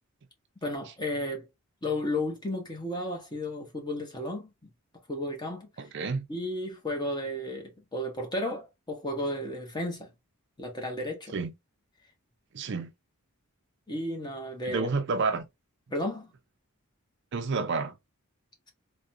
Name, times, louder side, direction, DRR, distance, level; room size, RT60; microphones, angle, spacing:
voice 1, 0.6-1.5 1.8-4.7 5.1-5.9 6.3-10.1 10.6-11.3 13.9-14.9 15.9-16.3, left 1 dB, 20° left, 0.9 m, -33 dB
voice 2, 5.8-6.3 11.3-11.5 12.5-12.9 14.7-15.4 17.3-17.9, right 4 dB, 55° right, 0.5 m, -29 dB
3.5 x 2.2 x 2.6 m
head